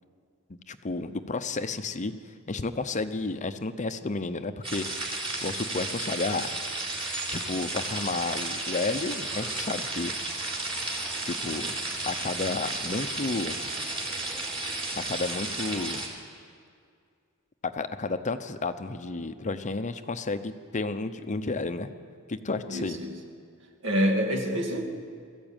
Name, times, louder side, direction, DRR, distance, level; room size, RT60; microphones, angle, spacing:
voice 1, 0.7-2.1 2.5-6.6 7.3-10.1 11.2-11.7 12.0-13.5 15.0-16.0 17.6-21.9 22.3-23.0, left 3 dB, 35° left, 9 dB, 0.7 m, -32 dB
sound 1, 4.6-16.1, right 2 dB, 25° right, 3.5 m, -33 dB
voice 2, 22.7-23.2 23.8-24.8, equal, 60° right, 2 dB, 2.3 m, -26 dB
21.5 x 14.0 x 9.0 m, 2.2 s
head